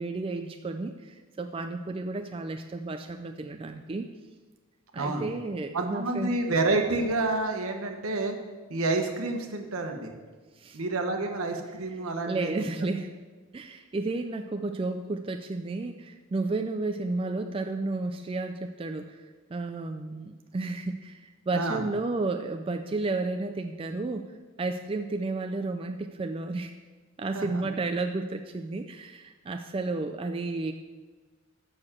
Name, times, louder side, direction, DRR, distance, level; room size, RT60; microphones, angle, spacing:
voice 1, 0.0-4.1 4.9-6.3 10.6-10.8 12.3-13.1 13.5-19.2 19.5-24.3 24.6-26.7 27.2-30.7, right 3 dB, 25° right, 6 dB, 0.3 m, -32 dB
voice 2, 4.9-5.3 5.7-8.3 8.7-10.1 10.7-12.5 21.5-21.8 27.3-27.6, right 2 dB, 80° right, 4 dB, 1.1 m, -29 dB
6.7 x 6.3 x 7.3 m, 1.3 s
head